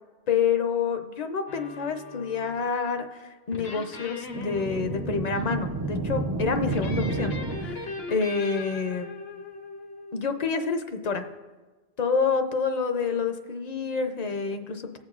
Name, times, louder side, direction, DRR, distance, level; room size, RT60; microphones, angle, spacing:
voice 1, 0.3-9.1 10.1-11.2 12.0-15.0, left 5 dB, 45° left, 7 dB, 0.7 m, -28 dB
sound 1, 1.5-2.9 3.5-5.5 6.7-10.2, left 3 dB, 70° left, 1.2 m, -39 dB
sound 2, 4.3-8.2, right 3 dB, 30° right, 0.3 m, -31 dB
18.5 x 7.6 x 2.4 m, 1.3 s
omnidirectional pair, 1.1 m